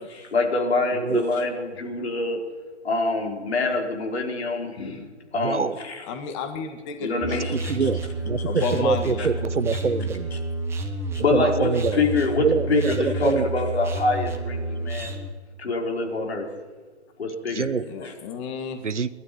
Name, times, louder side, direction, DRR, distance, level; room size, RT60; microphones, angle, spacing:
voice 1, 0.0-2.4 2.8-6.0 7.0-7.7 8.6-8.7 11.1-15.2 15.6-16.5 17.2-17.7 18.0-18.1, left 3 dB, 60° left, 1 dB, 4.8 m, -26 dB
voice 2, 0.9-1.2 5.4-5.8 7.3-10.3 11.3-12.0 12.4-13.5 17.5-17.9 18.8-19.1, right 5 dB, 75° right, 13 dB, 1.3 m, -25 dB
voice 3, 6.1-7.9 8.4-9.3 9.7-9.9 17.9-18.8, left 5 dB, 25° left, 6 dB, 2.0 m, -32 dB
sound 1, 7.2-15.3, right 2 dB, 5° right, 1.5 m, -30 dB
22.0 x 12.5 x 9.6 m, 1.4 s
figure-of-eight pair, 135°, 36 cm